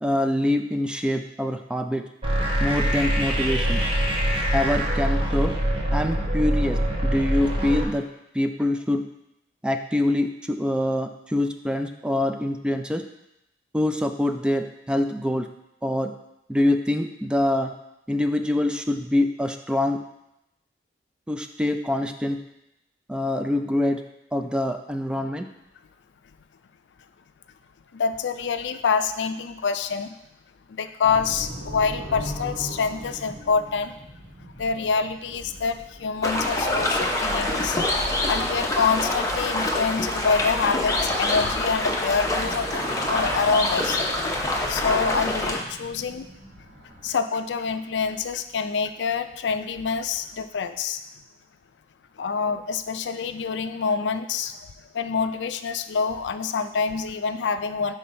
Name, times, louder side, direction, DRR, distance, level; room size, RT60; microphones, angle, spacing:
voice 1, 0.0-2.0 2.6-3.8 4.5-5.5 5.9-8.0 8.3-9.0 9.6-13.0 13.7-15.5 15.8-16.1 16.5-17.7 18.1-20.0 21.3-22.4 23.1-24.0 24.3-25.5, left 1 dB, 5° right, 6 dB, 0.3 m, -25 dB
sound 1, 2.2-7.8, equal, 30° right, 1.0 m, -24 dB
voice 2, 27.9-30.2 30.7-33.9 34.6-37.8 38.3-44.0 44.7-46.3 47.0-51.0 52.2-54.7 54.9-57.9, left 5 dB, 75° left, 10 dB, 0.4 m, -26 dB
sound 2, 31.0-47.1, equal, 80° right, 1.7 m, -40 dB
sound 3, 36.2-45.6, left 1 dB, 20° left, 0.8 m, -26 dB
5.5 x 5.1 x 4.3 m, 0.84 s
head